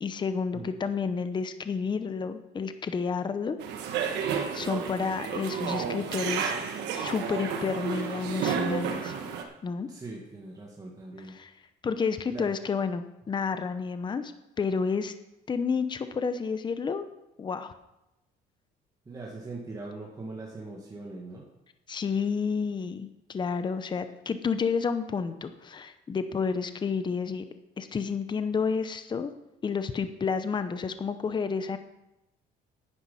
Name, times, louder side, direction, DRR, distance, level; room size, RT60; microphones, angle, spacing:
voice 1, 0.0-3.6 3.9-4.3 4.5-6.5 6.9-9.2 9.6-9.9 11.3-11.5 11.8-14.3 14.6-15.1 15.5-17.1 17.4-17.8 21.9-27.4 27.8-29.3 29.6-31.8, left 5 dB, 25° left, 10 dB, 0.7 m, -30 dB
sound 1, 3.6-9.4, right 7 dB, 85° right, 1.4 m, -31 dB
voice 2, 9.9-11.3 12.3-12.5 19.1-21.4, right 3 dB, 20° right, -3 dB, 1.9 m, -41 dB
9.9 x 9.4 x 5.6 m, 0.92 s
cardioid pair, 110°, 17 cm